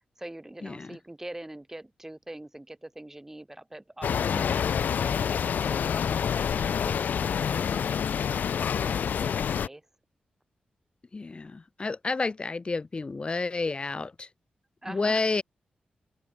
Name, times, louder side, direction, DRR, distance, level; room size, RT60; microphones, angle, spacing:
voice 1, 0.2-5.2 5.7-6.0 6.5-7.9 8.5-9.8 14.8-15.4, right 1 dB, 15° right, 3.4 m, -44 dB
sound 1, 4.0-9.7, left 7 dB, 80° left, 0.7 m, -27 dB
voice 2, 4.2-4.6 7.4-7.8 8.6-9.2 11.1-14.3 14.9-15.4, left 3 dB, 35° left, 2.7 m, -31 dB
cardioid pair, 90°, 3 cm